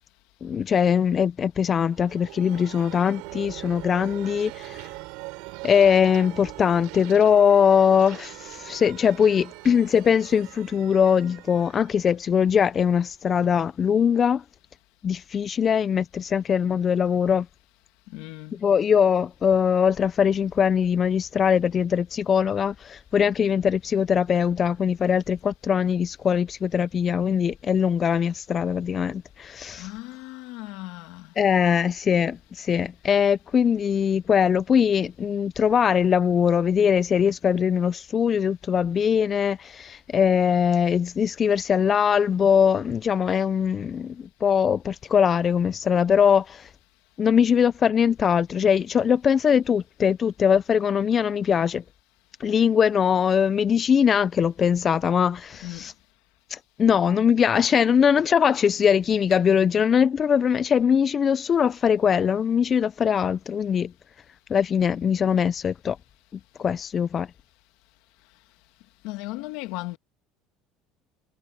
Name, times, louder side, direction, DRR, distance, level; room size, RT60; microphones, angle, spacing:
voice 1, 0.4-4.9 5.6-14.4 15.0-17.5 18.5-29.9 31.4-46.7 47.2-51.8 52.4-55.9 56.5-63.9 64.5-66.0 66.6-67.3, left 7 dB, 25° left, 0.3 m, -21 dB
sound 1, 1.6-13.1, right 24 dB, 75° right, 3.6 m, -42 dB
voice 2, 18.1-18.6 29.8-31.3 55.6-55.9 69.0-70.0, left 20 dB, 70° left, 2.1 m, -36 dB
cardioid pair, 155°, 0 cm